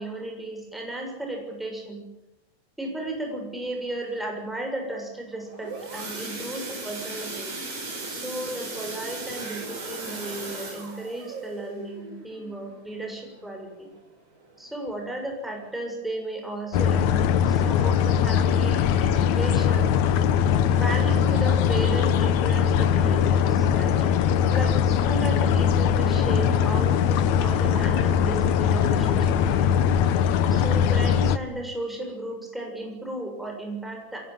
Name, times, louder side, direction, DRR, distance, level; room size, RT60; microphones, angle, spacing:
voice 1, 0.0-2.0 2.8-7.5 8.1-13.9 14.6-19.9 20.7-23.9 24.5-29.9 30.5-34.2, right 1 dB, ahead, 1 dB, 6.5 m, -34 dB
sound 1, 5.3-14.0 14.4-14.7 15.0-15.1 15.5-15.6, right 3 dB, 90° right, 6.4 m, -37 dB
sound 2, 16.7-31.4, left 8 dB, 75° left, 2.3 m, -21 dB
22.5 x 19.0 x 9.2 m, 0.96 s
omnidirectional pair, 3.3 m